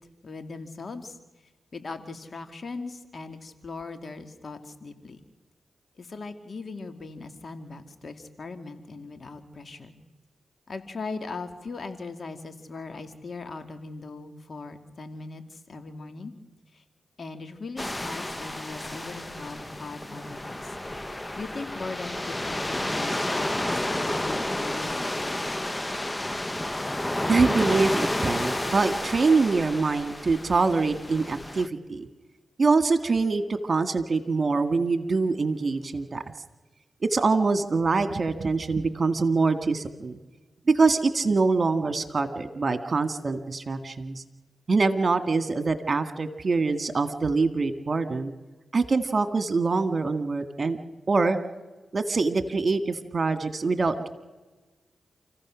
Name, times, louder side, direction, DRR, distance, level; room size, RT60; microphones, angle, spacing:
voice 1, 0.2-1.2 1.7-5.2 6.0-9.9 10.7-16.3 16.7-16.8 17.2-20.7 21.4-25.4, left 3 dB, 55° left, 7 dB, 2.3 m, -39 dB
sound 1, 17.8-31.7, left 1 dB, 20° left, 0.9 m, -31 dB
voice 2, 27.3-32.1 32.6-36.3 37.0-40.2 40.7-44.2 44.7-48.3 48.7-50.8 51.1-51.4 51.9-54.1, right 4 dB, 50° right, 8 dB, 2.0 m, -24 dB
29.0 x 15.5 x 6.4 m, 1.2 s
supercardioid pair, 45°, 0 cm